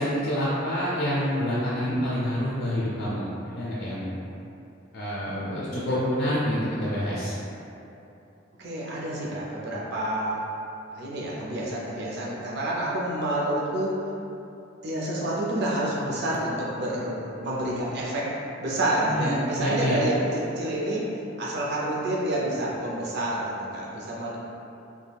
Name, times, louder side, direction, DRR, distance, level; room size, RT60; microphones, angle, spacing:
voice 1, 0.0-4.2 4.9-7.3 19.0-20.0, equal, 55° left, -8 dB, 0.5 m, -27 dB
voice 2, 8.6-10.4 10.9-13.9 14.8-18.3 18.6-21.1 21.4-24.4, right 1 dB, 60° right, -5 dB, 0.6 m, -28 dB
2.3 x 2.2 x 3.3 m, 2.8 s
head